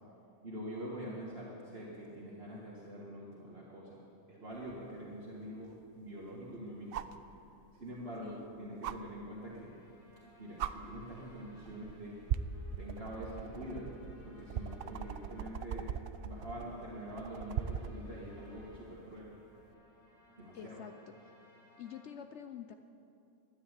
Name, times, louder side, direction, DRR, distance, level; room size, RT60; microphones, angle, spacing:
voice 1, 0.4-4.0 4.3-7.1 7.8-9.7 10.4-12.2 12.8-15.9 16.2-19.3 20.4-20.8, equal, 45° right, -5 dB, 1.9 m, -45 dB
sound 1, 4.7-4.8 6.9-7.2 8.8-9.0 10.1-10.2 10.6-10.7 11.7-11.9 12.3-18.0 19.6-19.7, right 9 dB, 65° right, 0.5 m, -39 dB
sound 2, 8.6-22.1, equal, 80° left, 4.0 m, -64 dB
voice 2, 20.5-20.9 21.2-21.3 21.8-22.7, left 9 dB, 65° left, 8 dB, 0.8 m, -47 dB
12.5 x 10.5 x 8.1 m, 2.7 s
omnidirectional pair, 1.5 m